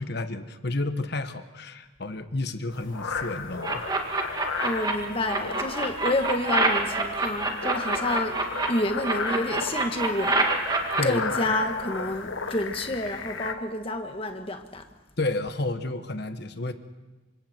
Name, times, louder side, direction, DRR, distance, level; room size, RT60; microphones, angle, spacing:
voice 1, 0.0-3.8 11.0-11.5 15.2-16.7, left 2 dB, 55° left, 9 dB, 1.3 m, -31 dB
sound 1, 2.7-13.5, left 4 dB, 85° left, 1.6 m, -35 dB
sound 2, 3.6-4.9 5.3-8.7 9.0-11.0, right 3 dB, 20° right, 2.2 m, -26 dB
voice 2, 4.6-8.3 8.7-10.4 11.0-14.8, left 1 dB, 30° left, 5 dB, 1.7 m, -29 dB
27.5 x 25.0 x 4.5 m, 1.2 s
head